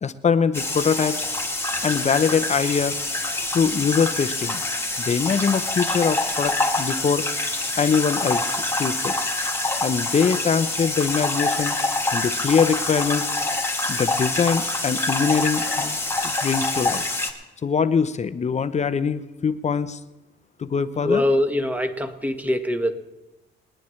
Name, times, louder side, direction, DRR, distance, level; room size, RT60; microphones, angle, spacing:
voice 1, 0.0-1.2 1.8-3.0 3.5-4.6 5.0-7.3 7.8-9.1 9.8-11.8 12.1-13.3 13.9-17.0 17.6-20.0 20.6-21.2, left 6 dB, 35° left, 12 dB, 0.7 m, -23 dB
sound 1, 0.5-17.3, left 2 dB, 10° left, 1.8 m, -26 dB
voice 2, 21.0-22.9, left 1 dB, 10° right, 5 dB, 1.4 m, -23 dB
27.5 x 10.0 x 3.2 m, 1.0 s
cardioid pair, 90°, 20 cm